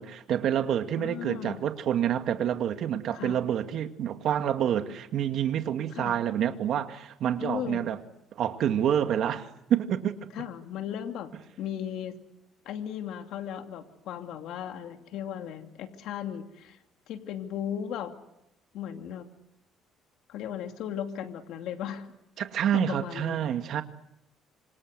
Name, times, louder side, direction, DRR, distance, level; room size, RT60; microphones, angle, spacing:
voice 1, 0.0-8.0 8.3-10.2 22.4-23.8, right 9 dB, 60° right, 2.1 m, -28 dB
voice 2, 1.0-1.6 3.1-3.4 5.9-6.2 7.4-7.9 10.3-11.3 11.6-12.1 12.6-16.8 17.1-18.1 18.7-19.3 20.3-22.1 22.7-23.5, left 9 dB, 75° left, 2.5 m, -36 dB
27.0 x 26.5 x 8.1 m
cardioid pair, 135°, 0 cm